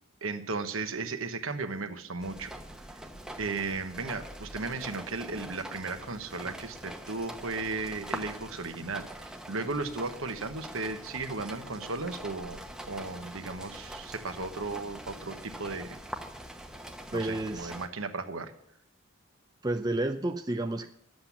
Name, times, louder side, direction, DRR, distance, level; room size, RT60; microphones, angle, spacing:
voice 1, 0.2-2.5 2.9-3.0 3.4-12.6 12.9-16.0 17.1-18.5, right 3 dB, 70° right, 7 dB, 1.2 m, -35 dB
sound 1, 2.2-17.9, right 1 dB, 5° right, 1.0 m, -44 dB
voice 2, 17.1-17.7 19.6-20.9, right 2 dB, 20° right, 5 dB, 0.5 m, -30 dB
11.5 x 7.8 x 7.3 m, 0.71 s
head